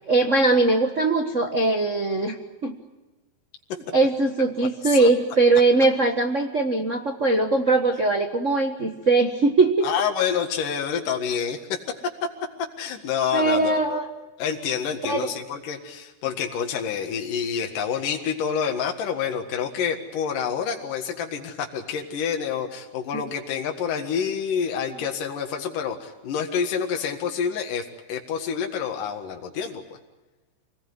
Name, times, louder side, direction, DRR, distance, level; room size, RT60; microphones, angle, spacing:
voice 1, 0.1-2.4 2.6-2.8 3.9-9.9 13.3-14.1 15.0-15.3 23.1-23.2, right 3 dB, 90° right, 5 dB, 0.6 m, -21 dB
voice 2, 9.8-12.3 12.8-14.0 14.4-29.8, left 7 dB, 70° left, 3 dB, 3.4 m, -28 dB
26.5 x 19.5 x 9.5 m, 1.1 s
omnidirectional pair, 4.0 m